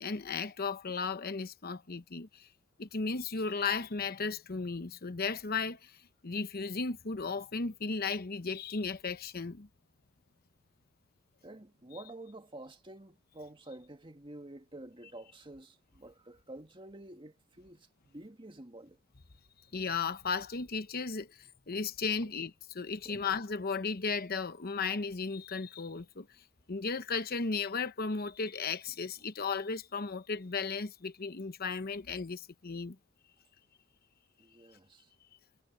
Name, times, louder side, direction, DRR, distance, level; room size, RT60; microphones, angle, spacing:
voice 1, 0.0-2.5 2.8-9.7 19.7-26.3 26.7-33.0, left 4 dB, 50° left, 0.9 m, -35 dB
voice 2, 11.4-19.0 21.7-21.8 22.2-22.3 23.0-23.2 34.4-35.1, right 1 dB, 25° right, 2.1 m, -49 dB
head